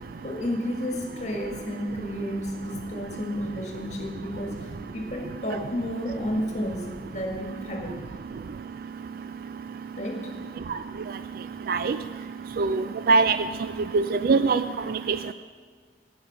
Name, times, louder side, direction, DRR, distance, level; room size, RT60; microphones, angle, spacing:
voice 1, 0.2-8.1 10.0-10.3, equal, 40° left, 1 dB, 1.8 m, -32 dB
voice 2, 12.6-13.4 13.9-14.6, right 4 dB, 55° right, 11 dB, 0.3 m, -21 dB
12.0 x 9.0 x 6.0 m, 1.5 s
head